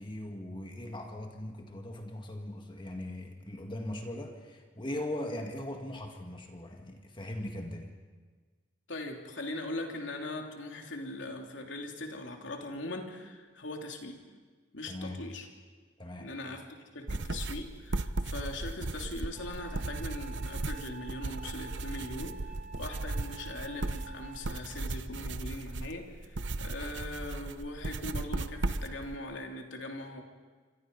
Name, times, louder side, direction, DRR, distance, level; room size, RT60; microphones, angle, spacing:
voice 1, 0.0-7.9 14.9-15.2 16.0-16.3, left 1 dB, 25° left, 3 dB, 1.9 m, -40 dB
voice 2, 8.9-14.2 14.7-15.5 16.2-16.7 16.9-30.2, left 2 dB, 85° left, 2 dB, 3.1 m, -40 dB
sound 1, 17.1-29.1, right 2 dB, 75° right, 0.9 m, -36 dB
sound 2, 19.4-24.5, right 5 dB, 5° right, 4.7 m, -49 dB
27.5 x 25.5 x 5.4 m, 1.5 s
head